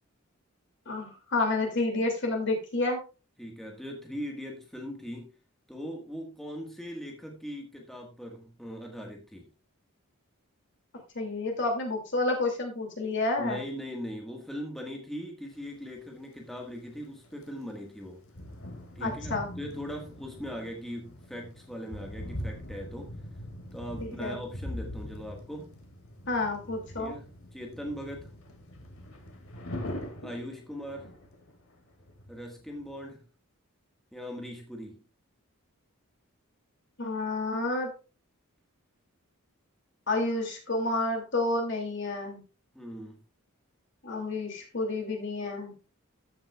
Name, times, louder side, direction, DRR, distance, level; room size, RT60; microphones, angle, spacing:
voice 1, 0.9-3.0 11.1-13.6 19.0-19.5 24.0-24.4 26.3-27.1 37.0-37.9 40.1-42.4 44.0-45.7, left 2 dB, 55° left, 2 dB, 2.6 m, -30 dB
voice 2, 3.4-5.3 5.7-9.5 13.4-18.2 18.9-23.1 23.7-25.7 27.0-28.3 30.2-31.1 32.3-33.3 34.1-35.0 42.7-43.2, equal, ahead, 0 dB, 1.6 m, -40 dB
sound 1, 15.6-15.7 17.2-17.7 18.1-33.0, left 1 dB, 75° left, 2.2 m, -42 dB
14.0 x 7.4 x 2.4 m, 0.31 s
head